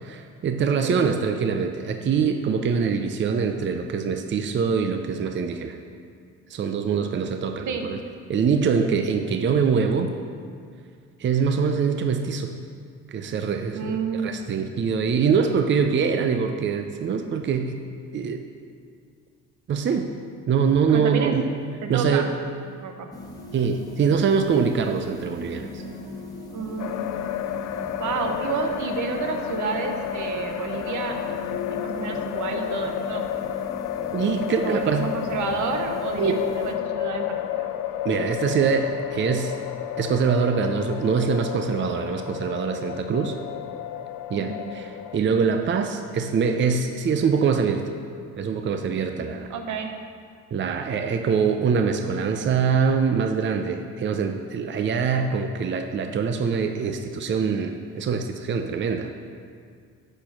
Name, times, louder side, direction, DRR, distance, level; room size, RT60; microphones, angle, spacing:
voice 1, 0.0-5.8 6.5-8.0 8.3-10.1 11.2-12.5 13.1-17.8 18.1-18.4 19.7-20.1 20.5-21.4 21.9-22.3 23.5-25.8 34.1-35.1 36.2-36.4 38.0-39.5 40.0-43.4 44.3-47.8 48.4-49.5 50.5-59.1, right 6 dB, 40° right, 6 dB, 0.5 m, -24 dB
voice 2, 13.7-14.5 20.9-21.4 21.8-22.3 22.8-23.1 26.5-27.1 28.0-31.3 31.7-33.3 34.6-37.7 44.3-44.7 49.5-49.9, right 5 dB, 75° right, 4 dB, 1.0 m, -30 dB
sound 1, 23.1-36.7, left 3 dB, 10° left, 1.4 m, -38 dB
sound 2, 26.8-45.2, left 11 dB, 65° left, 0.5 m, -31 dB
9.9 x 4.4 x 6.0 m, 2.2 s
cardioid pair, 90°, 30 cm